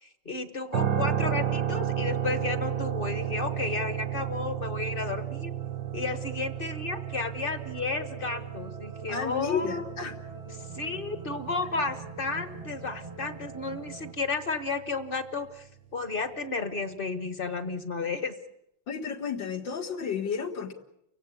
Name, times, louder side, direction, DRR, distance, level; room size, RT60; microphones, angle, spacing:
voice 1, 0.0-5.5 5.9-9.9 10.7-15.7 15.9-18.3, left 4 dB, 30° left, 11 dB, 1.4 m, -32 dB
sound 1, 0.7-14.7, right 10 dB, 75° right, 1.8 m, -33 dB
sound 2, 5.6-14.1, right 2 dB, 25° right, 0.9 m, -46 dB
voice 2, 9.1-10.1 18.9-20.7, left 6 dB, 75° left, 1 dB, 2.5 m, -32 dB
30.0 x 16.5 x 8.5 m, 0.82 s
omnidirectional pair, 2.0 m